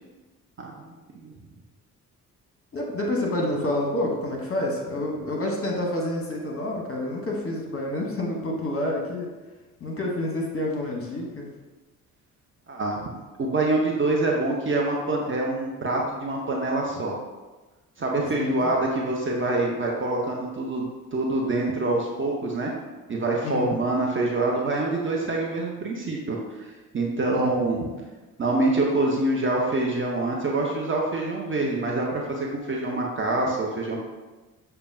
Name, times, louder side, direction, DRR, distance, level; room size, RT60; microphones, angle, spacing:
voice 1, 0.6-0.9 1.2-1.3 12.7-13.1 13.4-17.2 18.0-22.7 23.1-26.4 26.9-27.9 28.4-34.0, right 2 dB, 25° right, -2 dB, 0.7 m, -25 dB
voice 2, 2.7-9.3 9.8-11.5 18.2-18.7 23.4-23.8 27.3-27.6, left 1 dB, 30° left, 0 dB, 1.0 m, -28 dB
6.7 x 2.3 x 2.6 m, 1.2 s
figure-of-eight pair, 45°, 45 cm